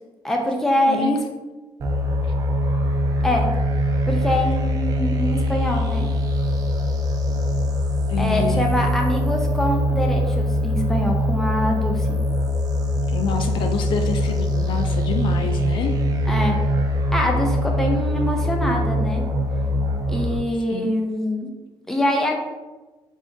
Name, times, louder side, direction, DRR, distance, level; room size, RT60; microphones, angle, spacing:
voice 1, 0.2-1.2 3.2-3.5 4.1-6.1 8.2-12.1 16.3-16.6 17.1-19.2 20.1-21.5 21.9-22.3, left 1 dB, 5° left, 1 dB, 0.5 m, -24 dB
sound 1, 1.8-20.4, equal, 40° right, 0.5 m, -22 dB
voice 2, 8.1-8.7 13.0-16.0 20.7-21.0, left 5 dB, 55° left, 5 dB, 0.3 m, -27 dB
4.1 x 3.5 x 2.6 m, 1.1 s
cardioid pair, 145°, 10 cm